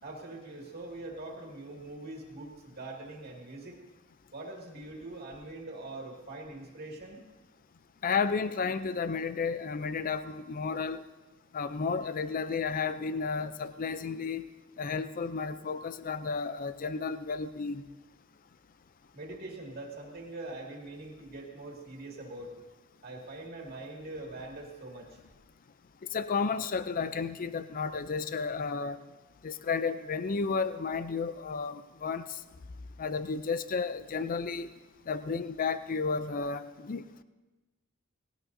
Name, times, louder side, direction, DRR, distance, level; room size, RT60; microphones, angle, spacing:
voice 1, 0.0-3.8 4.3-7.3 19.1-22.5 23.0-25.2, right 2 dB, 50° right, 0 dB, 2.3 m, -43 dB
voice 2, 8.0-11.0 11.5-14.4 14.8-17.8 26.1-29.0 29.4-32.2 33.0-34.7 35.1-37.0, left 5 dB, 45° left, 12 dB, 0.5 m, -32 dB
19.0 x 17.5 x 2.7 m, 1.1 s
head